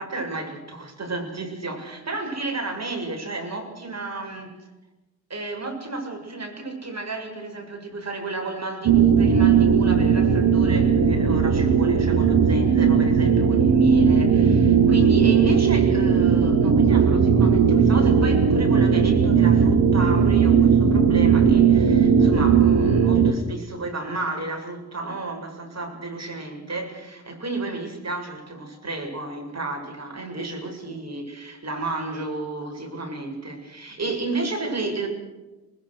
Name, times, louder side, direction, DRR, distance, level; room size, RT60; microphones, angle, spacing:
voice 1, 0.0-4.5 5.3-35.1, right 2 dB, 35° right, 2 dB, 7.5 m, -32 dB
sound 1, 8.8-23.3, right 6 dB, 50° right, 2.4 m, -17 dB
27.5 x 20.0 x 6.6 m, 1.1 s
hypercardioid pair, 40°, 48 cm